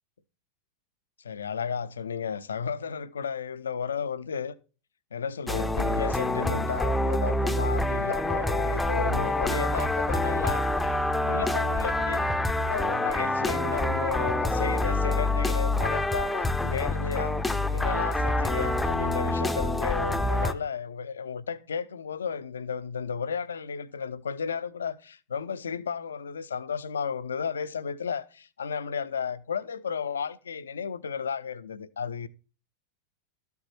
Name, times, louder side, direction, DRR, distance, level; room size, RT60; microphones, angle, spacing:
voice 1, 1.2-4.5 5.1-10.9 11.2-12.3 12.7-32.3, left 6 dB, 70° left, 0.6 m, -33 dB
sound 1, 5.5-20.5, left 2 dB, 5° left, 0.7 m, -26 dB
13.0 x 7.1 x 4.3 m
figure-of-eight pair, 90°, 0 cm